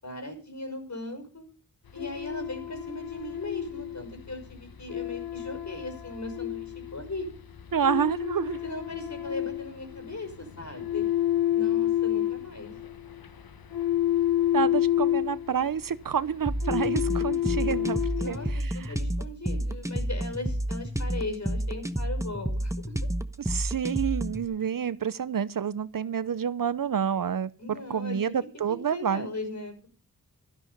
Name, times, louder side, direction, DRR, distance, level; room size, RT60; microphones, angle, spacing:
voice 1, 0.0-1.5 1.9-7.3 8.6-11.0 11.5-12.7 18.2-22.9 27.6-28.3 28.7-29.9, left 2 dB, 50° left, 5.8 m, -38 dB
sound 1, 1.9-18.5, left 12 dB, 70° left, 1.2 m, -30 dB
voice 2, 7.7-8.6 14.5-18.4 18.8-18.9 23.4-29.3, right 7 dB, 60° right, 0.8 m, -29 dB
sound 2, 16.5-24.5, right 1 dB, 10° right, 1.1 m, -30 dB
12.5 x 11.0 x 5.4 m
cardioid pair, 50°, 37 cm